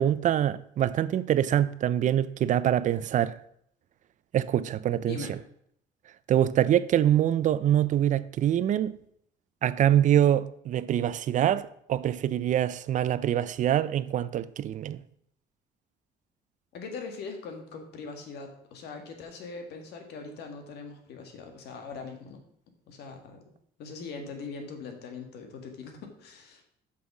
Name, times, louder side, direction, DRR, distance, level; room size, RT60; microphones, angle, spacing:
voice 1, 0.0-3.4 4.3-5.2 6.3-8.9 9.6-15.0, right 11 dB, 50° right, 0.4 m, -24 dB
voice 2, 16.7-22.4 22.9-23.5 23.8-26.6, left 4 dB, 75° left, 1.7 m, -41 dB
6.4 x 5.5 x 5.9 m
cardioid pair, 110°, 17 cm